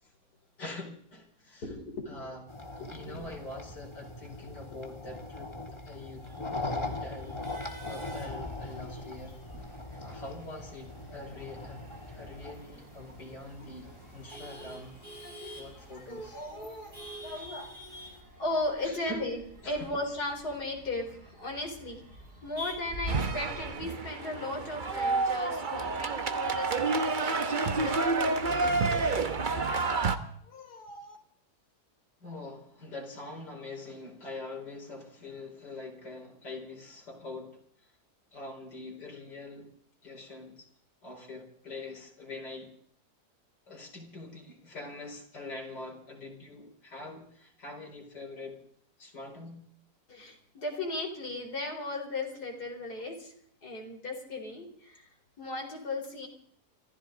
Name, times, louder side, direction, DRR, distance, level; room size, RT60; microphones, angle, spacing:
voice 1, 0.6-1.6 2.1-2.4 2.9-9.4 10.0-11.9 12.1-15.0 15.6-16.4 17.3-17.5 18.8-19.3 19.6-19.9 32.2-37.6 38.3-39.7 40.0-40.7 41.0-42.7 43.7-48.6 49.0-49.6, left 2 dB, 90° left, 0 dB, 5.1 m, -44 dB
voice 2, 1.6-2.3 2.8-3.3 4.8-4.9 8.8-8.9 11.2-11.3 11.9-12.0 14.3-14.7 15.2-15.6 15.9-17.7 18.4-22.0 22.4-29.2 30.4-31.2 50.1-53.3 53.6-55.1 55.4-56.3, left 2 dB, 70° left, 1 dB, 4.7 m, -37 dB
sound 1, 2.5-18.2, left 2 dB, 20° left, 1.5 m, -42 dB
Male speech man speaking / Laughter / Chatter, 6.2-23.8, right 1 dB, 50° right, 6.0 m, -46 dB
sound 2, 23.1-30.2, right 3 dB, 35° right, 1.0 m, -29 dB
25.5 x 14.5 x 3.9 m, 0.63 s
omnidirectional pair, 1.8 m